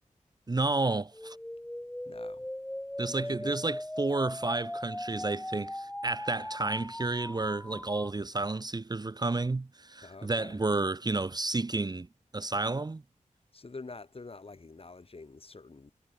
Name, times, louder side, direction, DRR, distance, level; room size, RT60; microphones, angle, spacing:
voice 1, 0.5-1.4 3.0-12.1 12.3-13.0, right 3 dB, 30° right, 0.7 m, -31 dB
sound 1, 1.1-8.1, left 1 dB, 5° left, 0.7 m, -39 dB
voice 2, 2.1-2.5 3.2-3.6 10.0-10.6 13.5-15.9, left 3 dB, 45° left, 2.1 m, -46 dB
wide cardioid pair, 85°, 14 cm